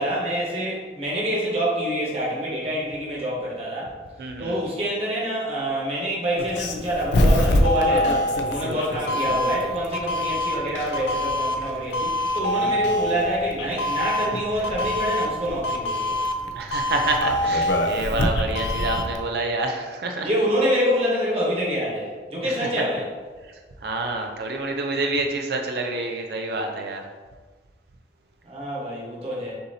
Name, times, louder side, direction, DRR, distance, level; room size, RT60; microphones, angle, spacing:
voice 1, 0.0-3.9 4.4-16.2 20.2-23.0 28.4-29.5, equal, 35° right, -5 dB, 1.3 m, -26 dB
voice 2, 4.2-4.6 12.6-13.0 16.6-20.3 22.4-22.7 23.8-27.0, right 2 dB, 65° right, 2 dB, 0.4 m, -28 dB
Doorbell, 6.4-19.2, left 1 dB, 85° left, 0.5 m, -24 dB
6.7 x 2.8 x 2.7 m, 1.4 s
head